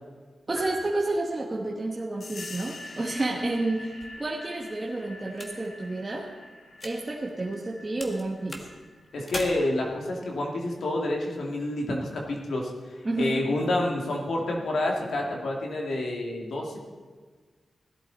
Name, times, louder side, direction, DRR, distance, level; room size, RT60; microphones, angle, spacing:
voice 1, 0.5-3.9 4.2-6.3 6.8-8.6 13.0-13.4, right 2 dB, 25° right, -2 dB, 1.2 m, -30 dB
sound 1, 0.6-1.9, right 1 dB, 5° left, 3.0 m, -42 dB
sound 2, 2.2-10.5, left 2 dB, 45° left, 1.1 m, -46 dB
sound 3, 3.4-7.7 8.0-9.4, left 2 dB, 30° left, 1.6 m, -43 dB
voice 2, 9.1-12.7 13.2-16.8, left 1 dB, 85° left, 0 dB, 2.4 m, -28 dB
17.5 x 12.0 x 4.1 m, 1.5 s
wide cardioid pair, 175°, 0 cm